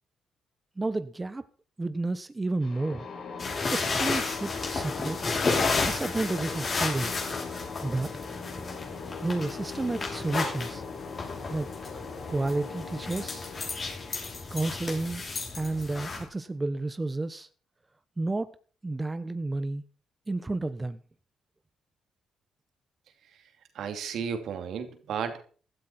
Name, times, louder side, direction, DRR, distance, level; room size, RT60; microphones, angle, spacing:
voice 1, 0.8-1.4 1.8-3.1 3.7-5.2 5.8-7.4 7.8-8.1 9.2-10.8 11.5-11.7 11.9-12.0 12.3-13.4 14.5-15.2 15.5-17.5 18.2-18.6 18.8-19.8 20.3-21.0, right 2 dB, 20° right, 1.0 m, -31 dB
sound 1, 2.6-16.3, left 5 dB, 60° left, 5.9 m, -41 dB
sound 2, 3.4-16.2, left 3 dB, 40° left, 6.0 m, -32 dB
voice 2, 23.7-25.4, right 7 dB, 70° right, 2.6 m, -33 dB
16.0 x 13.0 x 4.3 m
cardioid pair, 90°, 0 cm